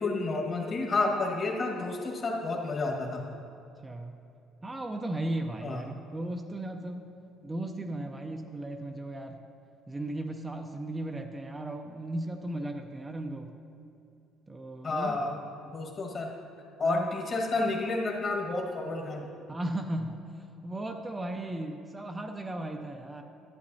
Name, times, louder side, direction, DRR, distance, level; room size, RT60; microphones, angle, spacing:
voice 1, 0.0-3.2 5.6-5.8 14.8-15.4 15.6-16.3 16.8-19.2, left 3 dB, 40° left, 0 dB, 1.5 m, -30 dB
voice 2, 3.8-4.2 4.6-7.1 7.4-9.4 9.9-13.5 14.5-15.2 16.8-17.1 19.5-23.2, right 1 dB, 15° right, 4 dB, 0.5 m, -36 dB
11.5 x 8.5 x 2.7 m, 2.7 s
cardioid pair, 105°, 0 cm